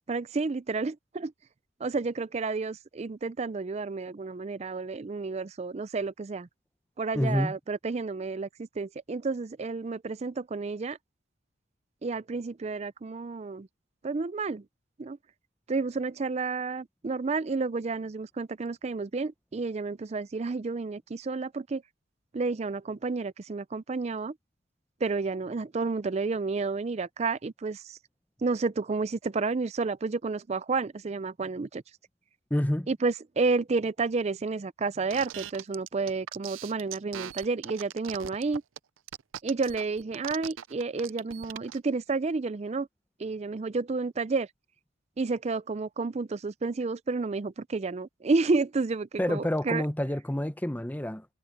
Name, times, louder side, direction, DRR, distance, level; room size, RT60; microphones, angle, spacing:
voice 1, 0.1-1.3 1.8-6.5 7.0-11.0 12.0-13.7 14.0-14.6 15.0-15.2 15.7-21.8 22.3-24.3 25.0-28.0 28.4-31.8 32.9-38.6 39.4-42.9 43.2-44.5 45.2-49.8, right 4 dB, 35° right, 0.4 m, -30 dB
voice 2, 7.1-7.5 32.5-32.9 49.2-51.3, left 1 dB, 10° left, 0.7 m, -28 dB
sound 1, 35.1-41.8, right 10 dB, 85° right, 0.5 m, -40 dB
head